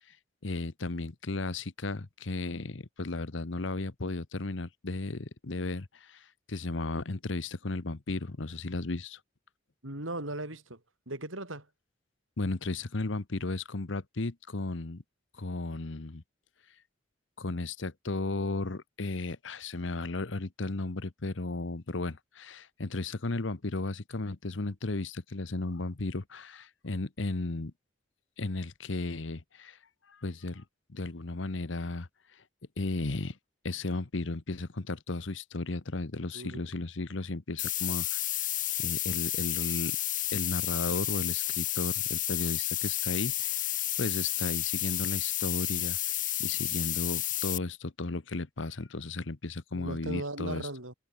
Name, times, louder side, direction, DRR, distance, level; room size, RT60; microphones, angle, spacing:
voice 1, 0.4-9.2 12.4-15.0 15.4-16.2 17.4-27.7 28.4-29.8 30.1-30.6 30.9-32.1 32.8-33.4 33.6-38.2 38.8-40.0 40.3-46.1 46.4-50.7, left 2 dB, 75° left, 1.1 m, -35 dB
voice 2, 9.8-10.8 11.1-11.7 36.3-36.7 49.7-50.9, right 2 dB, 90° right, 7.0 m, -37 dB
sound 1, 37.6-47.6, left 14 dB, 40° left, 2.1 m, -31 dB
head